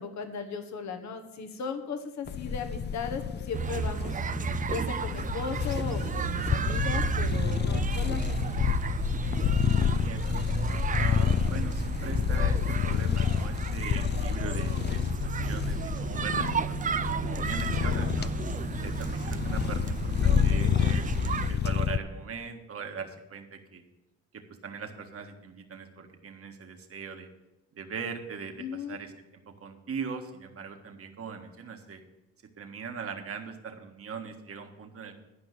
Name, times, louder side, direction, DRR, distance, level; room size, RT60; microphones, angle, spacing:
voice 1, 0.0-4.2 4.7-8.6 28.6-29.0, left 5 dB, 65° left, 7 dB, 1.4 m, -37 dB
sound 1, 2.3-22.0, left 7 dB, 35° left, 0.6 m, -29 dB
sound 2, 3.5-21.5, right 7 dB, 25° right, 0.4 m, -33 dB
voice 2, 9.8-10.4 10.9-18.3 18.8-23.8 24.3-27.3 27.7-32.0 32.6-35.1, right 5 dB, 50° right, 4 dB, 1.6 m, -40 dB
11.5 x 5.3 x 8.1 m, 0.95 s
cardioid pair, 90°, 30 cm